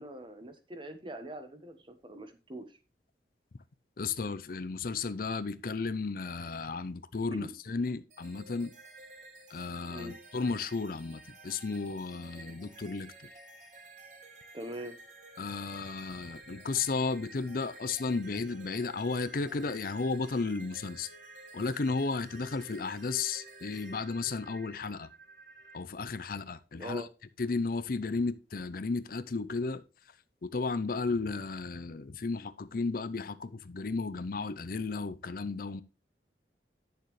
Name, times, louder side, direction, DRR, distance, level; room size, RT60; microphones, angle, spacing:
voice 1, 0.0-2.6 7.3-7.5 9.9-10.2 14.5-14.9 26.8-27.1, right 1 dB, 30° right, 1.2 m, -42 dB
voice 2, 4.0-8.7 9.5-13.1 15.4-21.1 21.5-25.1 25.7-27.1 27.4-29.8 30.4-35.8, left 4 dB, 50° left, 0.5 m, -34 dB
sound 1, 8.1-25.8, right 2 dB, 45° right, 2.4 m, -52 dB
9.9 x 6.8 x 3.2 m
head